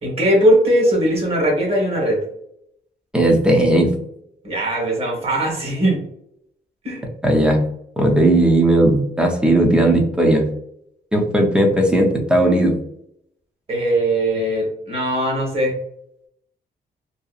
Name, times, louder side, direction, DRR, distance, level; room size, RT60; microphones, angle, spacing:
voice 1, 0.0-2.2 4.4-6.0 6.8-7.0 13.7-15.7, right 1 dB, 35° right, -2 dB, 1.1 m, -19 dB
voice 2, 3.1-3.9 7.2-7.7 8.0-10.4 11.1-12.8, right 1 dB, 5° right, 0 dB, 0.5 m, -16 dB
2.7 x 2.2 x 2.3 m, 0.74 s
wide cardioid pair, 155°, 17 cm